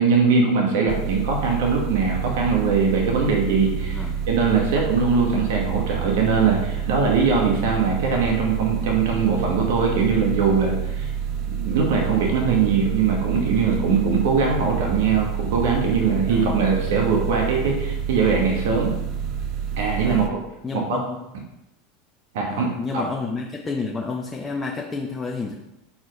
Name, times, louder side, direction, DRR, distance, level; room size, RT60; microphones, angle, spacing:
voice 1, 0.0-11.1 11.6-18.9 19.8-20.2 20.7-21.0 22.3-23.0, right 5 dB, 70° right, -1 dB, 1.3 m, -21 dB
sound 1, 0.9-20.3, right 8 dB, 50° right, 0.7 m, -28 dB
voice 2, 16.3-16.6 20.0-20.3 20.6-21.3 22.5-25.5, left 4 dB, 20° left, 0 dB, 0.8 m, -30 dB
4.6 x 4.3 x 5.3 m, 0.91 s
hypercardioid pair, 95°, 0 cm